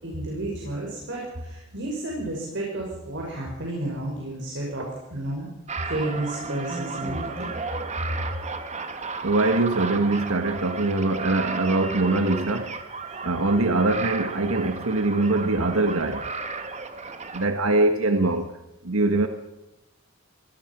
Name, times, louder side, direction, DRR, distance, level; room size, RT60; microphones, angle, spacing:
voice 1, 0.0-5.5 5.9-7.5, right 1 dB, 60° right, 5.9 m, -31 dB
sound 1, 5.7-17.5, right 4 dB, 35° right, 1.9 m, -34 dB
voice 2, 9.2-12.7 13.2-16.2 17.3-18.5 18.8-19.3, right 2 dB, 85° right, 1.5 m, -23 dB
24.5 x 19.0 x 6.1 m
head